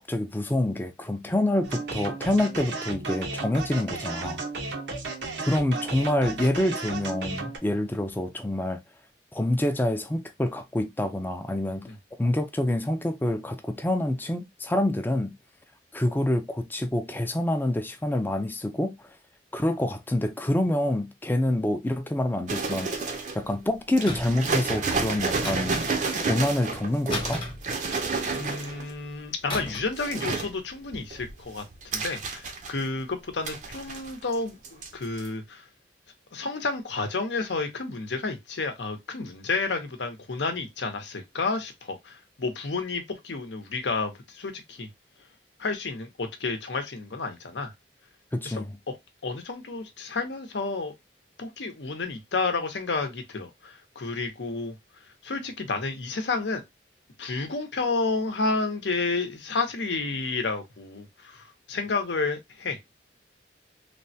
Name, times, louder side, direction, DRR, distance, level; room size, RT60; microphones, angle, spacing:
voice 1, 0.0-4.4 5.5-8.8 9.3-11.8 12.2-15.3 15.9-18.9 19.5-25.8 26.2-27.5 48.3-48.8, left 1 dB, 10° left, 0.4 m, -27 dB
sound 1, 1.6-7.6, right 3 dB, 90° right, 0.8 m, -34 dB
sound 2, 22.5-23.5 24.0-28.9 29.6-30.5 30.9-33.0 33.4-34.4 34.6-34.9 35.2-35.3, right 4 dB, 45° right, 0.5 m, -30 dB
sound 3, 24.1-24.5 25.4-26.2 27.1-28.3 29.5-30.0 30.3-30.5, left 2 dB, 30° left, 0.9 m, -34 dB
voice 2, 28.3-31.6 31.9-35.6 36.3-44.9 45.6-47.7 48.4-48.6 49.2-50.9 51.4-54.7 55.2-56.6 57.2-62.8, left 3 dB, 85° left, 0.7 m, -31 dB
3.3 x 2.1 x 2.6 m
head